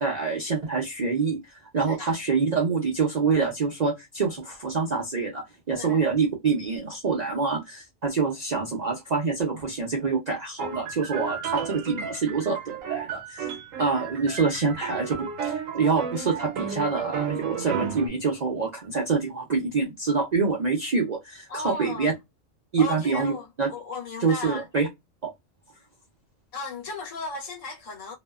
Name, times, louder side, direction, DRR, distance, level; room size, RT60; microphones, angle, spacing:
voice 1, 0.0-13.5 13.8-22.1 22.7-23.7 24.2-24.9 25.2-25.3, right 4 dB, 55° right, 0.4 m, -26 dB
sound 1, 10.6-18.1, right 7 dB, 75° right, 1.0 m, -33 dB
voice 2, 21.5-22.1 22.8-24.7 26.5-28.1, left 3 dB, 75° left, 1.1 m, -36 dB
2.6 x 2.1 x 2.3 m
omnidirectional pair, 1.4 m